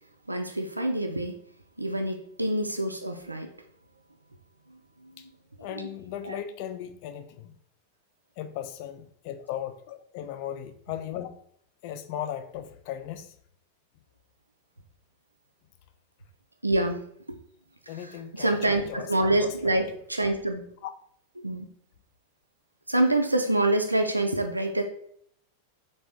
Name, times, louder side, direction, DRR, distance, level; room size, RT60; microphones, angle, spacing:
voice 1, 0.3-1.3 1.8-3.5 4.7-5.3 5.7-5.9 6.2-6.4 16.6-17.4 18.0-20.7 21.4-21.7 22.9-24.8, right 1 dB, 85° right, 4 dB, 0.3 m, -27 dB
voice 2, 5.6-7.6 8.4-11.3 11.8-13.3 17.9-19.1 19.4-19.7, left 10 dB, 45° left, 10 dB, 0.3 m, -37 dB
3.4 x 2.6 x 3.2 m, 0.65 s
figure-of-eight pair, 90°, 0 cm